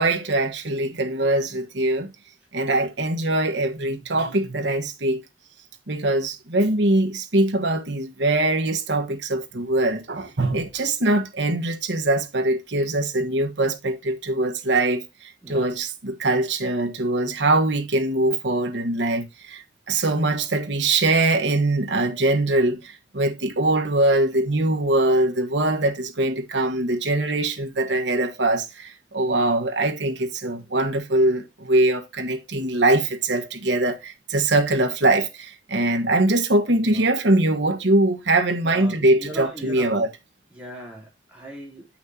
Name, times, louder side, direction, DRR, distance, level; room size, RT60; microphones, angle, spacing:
voice 1, 0.0-2.1 2.5-5.2 5.9-40.1, right 2 dB, 85° right, 1.4 m, -22 dB
voice 2, 38.6-39.9 40.5-42.0, right 1 dB, 5° right, 3.5 m, -38 dB
8.4 x 5.8 x 2.8 m
head